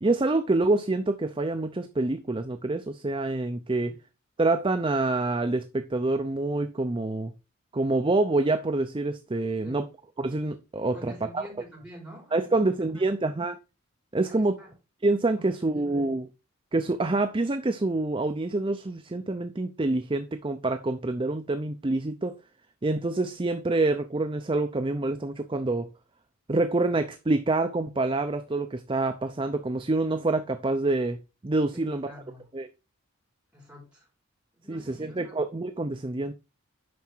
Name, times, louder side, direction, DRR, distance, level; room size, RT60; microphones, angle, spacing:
voice 1, 0.0-3.9 4.4-7.3 7.7-9.8 10.2-11.4 12.3-13.6 14.1-14.6 15.0-16.3 16.7-22.4 22.8-25.9 26.5-31.2 31.4-32.1 32.5-32.7 34.7-36.3, right 2 dB, 25° right, 0.5 m, -26 dB
voice 2, 10.9-13.2 14.3-14.7 15.3-16.1 31.7-32.5 33.5-34.1 34.5-35.4, equal, 5° right, 4.8 m, -47 dB
9.4 x 5.9 x 4.5 m
head